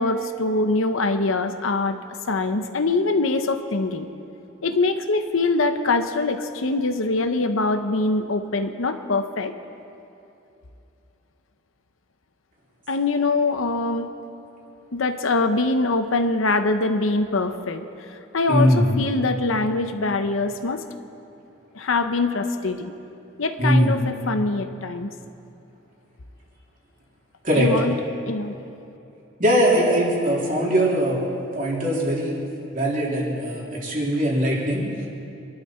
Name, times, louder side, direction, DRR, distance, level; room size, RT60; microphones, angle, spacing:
voice 1, 0.0-2.0 2.3-4.1 4.6-9.5 12.9-14.1 14.9-17.9 18.3-20.8 21.7-22.9 23.4-25.1 27.5-28.0 28.3-28.6, left 3 dB, 90° left, 7 dB, 0.8 m, -23 dB
voice 2, 18.5-18.9 23.6-23.9 27.4-27.7 29.4-31.2 31.5-32.4 32.7-34.8, equal, 40° right, -4 dB, 3.2 m, -21 dB
26.5 x 11.5 x 4.4 m, 2.8 s
head